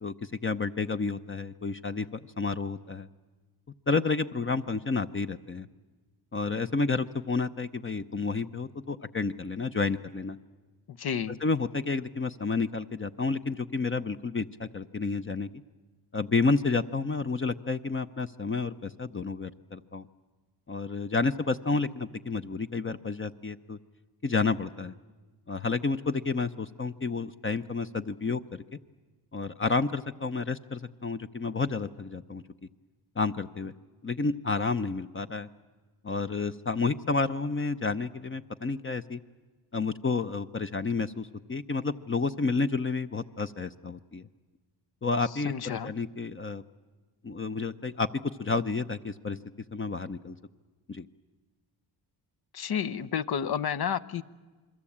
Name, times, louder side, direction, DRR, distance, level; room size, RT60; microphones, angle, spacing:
voice 1, 0.0-3.1 3.9-5.7 6.3-10.4 11.3-15.5 16.1-20.1 20.7-23.8 24.2-24.9 25.5-28.6 29.3-32.4 33.2-33.7 34.0-35.5 36.0-39.2 39.7-44.2 45.0-46.6 47.2-49.4 49.7-50.4 50.9-51.1, left 4 dB, 30° left, 9 dB, 0.8 m, -30 dB
voice 2, 11.0-11.4 45.4-45.9 52.5-54.2, left 8 dB, 55° left, 12 dB, 1.0 m, -30 dB
28.0 x 22.0 x 8.7 m, 1.3 s
cardioid pair, 85°, 44 cm